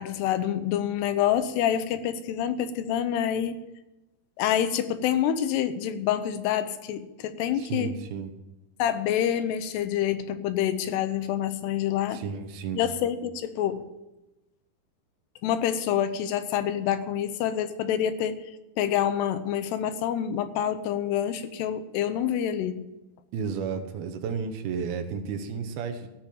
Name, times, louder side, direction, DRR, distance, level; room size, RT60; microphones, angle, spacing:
voice 1, 0.0-3.7 4.4-8.0 8.8-12.2 12.7-13.8 15.4-18.4 18.8-22.8, left 10 dB, 90° left, 11 dB, 3.0 m, -27 dB
voice 2, 7.6-8.3 12.1-12.8 23.3-26.1, right 6 dB, 75° right, 6 dB, 2.8 m, -32 dB
16.0 x 6.0 x 8.5 m, 0.99 s
omnidirectional pair, 4.6 m